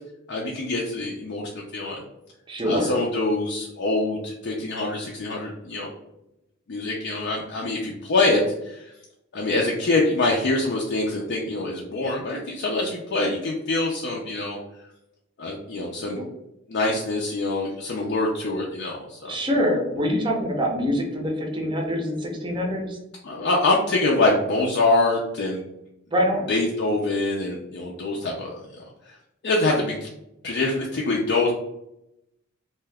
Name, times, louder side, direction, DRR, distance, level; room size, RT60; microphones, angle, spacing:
voice 1, 0.3-2.0 2.6-5.9 6.7-8.8 9.3-14.6 15.4-16.2 16.7-19.3 23.2-25.7 26.5-29.2 29.4-30.1 30.4-31.5, left 2 dB, 55° left, -2 dB, 0.4 m, -25 dB
voice 2, 2.5-2.9 16.1-16.2 19.3-23.0 26.1-26.5, equal, 25° right, 0 dB, 0.6 m, -25 dB
2.8 x 2.2 x 3.3 m, 0.84 s
head